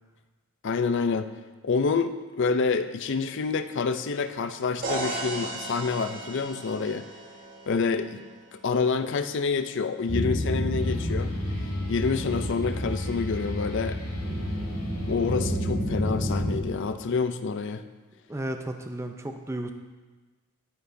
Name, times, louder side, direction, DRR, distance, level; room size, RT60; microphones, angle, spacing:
voice 1, 0.6-1.3 1.6-7.0 7.7-8.2 8.5-11.3 11.9-14.0 15.0-17.8, left 4 dB, 55° left, 10 dB, 0.5 m, -27 dB
sound 1, 4.8-8.7, right 2 dB, 40° right, 1.5 m, -36 dB
sound 2, 10.1-16.6, left 1 dB, 60° right, 2.9 m, -29 dB
sound 3, 10.8-15.8, equal, 85° left, 2.0 m, -44 dB
voice 2, 18.3-19.7, right 1 dB, 10° right, 5 dB, 0.5 m, -33 dB
10.5 x 9.6 x 2.7 m, 1.3 s
head